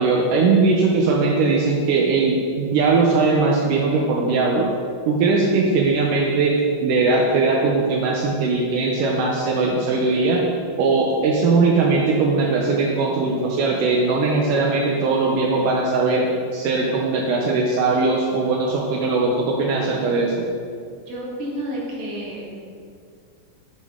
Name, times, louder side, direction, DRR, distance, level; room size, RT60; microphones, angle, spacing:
voice 1, 0.0-4.7 5.1-10.4 10.8-20.5, right 3 dB, 80° right, -2 dB, 2.2 m, -20 dB
voice 2, 21.1-22.6, right 1 dB, 50° right, -5 dB, 2.3 m, -30 dB
8.4 x 7.2 x 3.6 m, 2.3 s
omnidirectional pair, 3.9 m